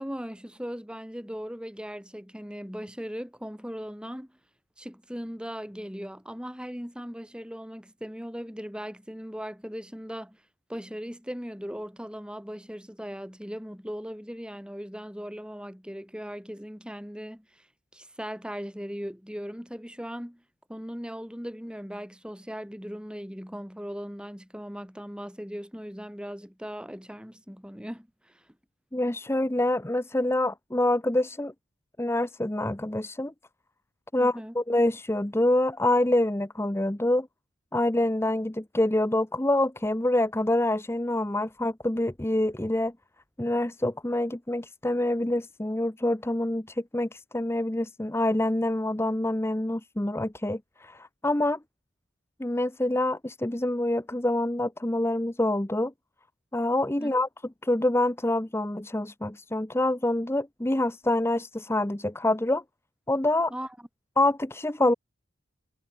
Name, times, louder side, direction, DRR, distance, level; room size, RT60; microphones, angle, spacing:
voice 1, 0.0-4.3 4.8-10.4 10.7-17.6 17.9-20.4 20.7-28.4 34.2-34.6 57.0-57.1 63.5-63.9, equal, 5° right, 6.9 m, -38 dB
voice 2, 28.9-31.5 32.0-33.3 34.1-37.3 37.7-42.9 43.4-51.6 52.4-55.9 56.5-57.3 57.6-62.6 63.1-63.5 64.2-64.9, left 1 dB, 10° left, 0.8 m, -26 dB
head